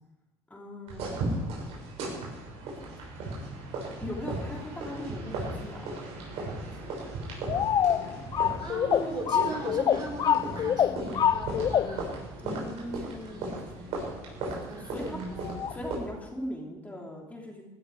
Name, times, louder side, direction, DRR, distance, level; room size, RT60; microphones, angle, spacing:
voice 1, 0.5-1.8 4.0-5.9 12.4-13.6 14.8-15.2 15.7-17.6, left 1 dB, 15° left, -1 dB, 2.9 m, -39 dB
sound 1, 0.9-16.0, right 2 dB, 75° right, 6.4 m, -37 dB
sound 2, 7.5-12.1 15.4-15.8, left 9 dB, 40° left, 0.4 m, -26 dB
voice 2, 8.6-12.1 12.9-13.5 13.8-13.9 14.5-15.5, right 3 dB, 40° right, 0 dB, 5.4 m, -38 dB
18.0 x 12.0 x 4.9 m, 1.0 s
cardioid pair, 110°, 11 cm